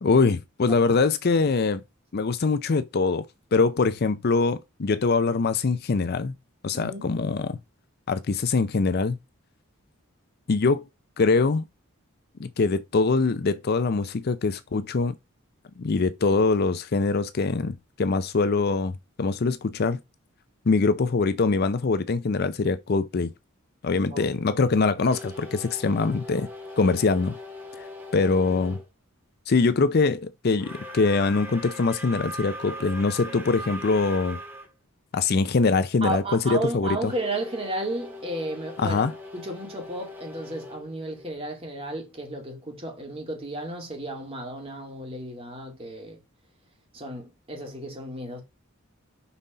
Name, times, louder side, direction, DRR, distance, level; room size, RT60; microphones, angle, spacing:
voice 1, 0.0-1.8 2.1-3.2 3.5-6.3 6.6-7.6 8.1-9.2 10.5-10.9 11.2-11.6 12.4-15.1 15.8-20.0 20.7-23.3 23.8-26.5 26.8-27.4 28.1-28.8 29.5-34.4 35.1-37.0 38.8-39.1, left 4 dB, 45° left, 0.5 m, -23 dB
voice 2, 6.7-7.2 24.1-24.3 36.0-39.0 39.3-46.2 46.9-48.4, right 2 dB, 25° right, 2.3 m, -33 dB
sound 1, 25.0-28.9 30.5-34.7 37.0-41.9, equal, 10° right, 1.9 m, -40 dB
5.7 x 4.1 x 5.1 m
head